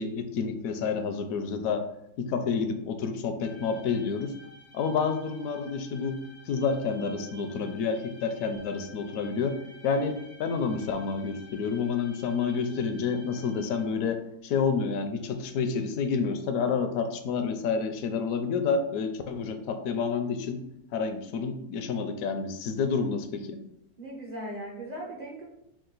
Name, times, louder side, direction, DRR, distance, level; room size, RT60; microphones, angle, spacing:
voice 1, 0.0-1.8 2.2-4.3 4.7-6.2 6.5-9.6 9.8-20.6 20.9-23.6, left 5 dB, 75° left, 7 dB, 0.9 m, -29 dB
sound 1, 3.4-13.9, left 2 dB, 45° left, 0.5 m, -51 dB
voice 2, 24.0-25.4, right 1 dB, 40° right, -3 dB, 0.6 m, -38 dB
4.7 x 2.4 x 3.8 m, 0.80 s
omnidirectional pair, 1.6 m